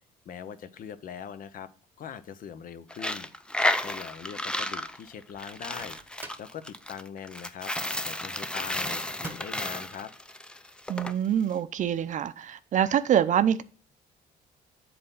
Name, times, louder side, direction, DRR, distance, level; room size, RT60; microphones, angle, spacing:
voice 1, 0.3-1.7 2.0-3.3 3.8-6.0 6.4-7.7 8.0-10.1, left 8 dB, 55° left, 0.8 m, -41 dB
Coin (dropping), 2.9-11.1, left 1 dB, 5° left, 0.5 m, -32 dB
Microwave oven, 5.5-6.5 9.1-9.7, right 2 dB, 10° right, 1.1 m, -44 dB
voice 2, 10.9-13.6, right 9 dB, 50° right, 0.6 m, -25 dB
7.8 x 4.2 x 5.4 m
cardioid pair, 110°, 17 cm